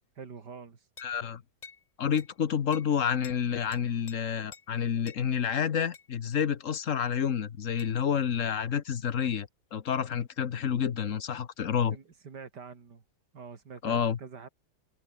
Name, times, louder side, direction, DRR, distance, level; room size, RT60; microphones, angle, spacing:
voice 1, 0.2-0.9 11.9-13.0 13.3-14.5, right 5 dB, 75° right, 3.0 m, -46 dB
voice 2, 1.0-1.4 2.0-12.0 13.8-14.2, left 8 dB, 50° left, 1.3 m, -29 dB
sound 1, 1.0-1.2 1.6-1.8 2.2-2.3 2.7-2.9 3.2-3.4 3.7-4.2 4.5-4.7 5.1-5.2 5.9-6.1 7.8-8.0, left 5 dB, 35° left, 0.8 m, -49 dB
omnidirectional pair, 1.9 m